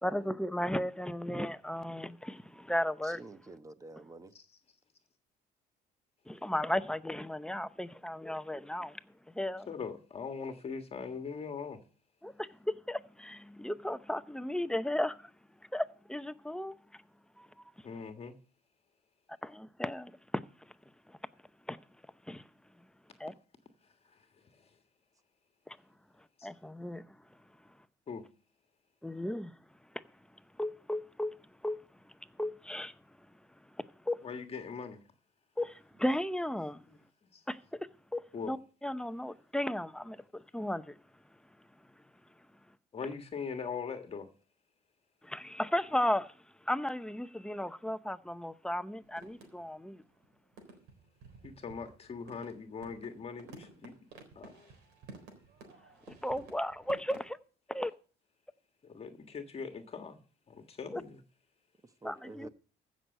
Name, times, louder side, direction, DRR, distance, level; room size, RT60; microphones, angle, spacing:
voice 1, 0.0-3.2 6.3-9.0 9.3-9.7 12.2-15.3 15.7-17.0 17.4-17.7 19.4-20.7 21.1-21.2 21.7-21.8 22.3-22.4 22.8-22.9 23.2-23.3 25.7-25.8 26.4-27.4 29.0-29.5 29.9-30.0 30.6-31.4 31.6-31.8 32.0-33.0 33.6-34.2 35.6-36.8 37.5-38.6 38.8-41.0 45.2-46.4 46.6-50.0 56.2-57.4 57.7-57.9 60.9-61.0 62.0-62.5, left 1 dB, 5° left, 0.7 m, -35 dB
voice 2, 3.0-4.3 62.0-62.5, right 2 dB, 20° right, 1.1 m, -48 dB
voice 3, 9.7-11.8 17.8-18.3 23.8-24.7 26.4-26.5 28.1-28.2 34.2-35.0 36.9-37.0 37.3-37.4 38.3-38.5 42.9-44.3 51.4-53.9 54.3-54.7 58.8-60.2 60.5-61.2, left 5 dB, 35° left, 1.5 m, -41 dB
sound 1, 49.1-49.9 50.2-50.3 50.5-57.3, right 3 dB, 90° right, 3.9 m, -53 dB
15.0 x 6.3 x 6.6 m
cardioid pair, 110°, 17 cm